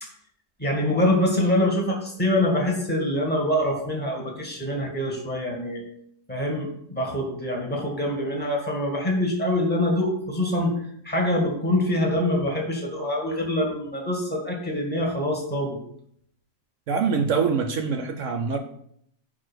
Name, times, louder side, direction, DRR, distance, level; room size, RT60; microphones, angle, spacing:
voice 1, 0.6-5.8 6.3-15.8, left 1 dB, 5° left, -1 dB, 1.8 m, -25 dB
voice 2, 16.9-18.6, right 5 dB, 65° right, 6 dB, 0.8 m, -24 dB
5.9 x 4.7 x 6.2 m, 0.70 s
omnidirectional pair, 1.7 m